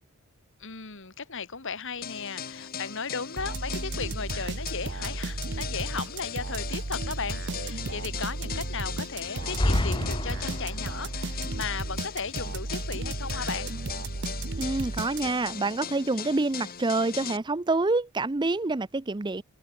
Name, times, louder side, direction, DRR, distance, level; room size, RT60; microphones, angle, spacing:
voice 1, 0.6-13.7, left 5 dB, 55° left, 2.0 m, -36 dB
sound 1, 2.0-17.4, left 8 dB, 40° left, 1.3 m, -39 dB
sound 2, 3.4-15.6, right 2 dB, 55° right, 1.1 m, -34 dB
sound 3, 9.4-11.0, left 1 dB, 20° left, 1.3 m, -28 dB
voice 2, 14.6-19.4, right 3 dB, 20° right, 0.5 m, -27 dB
head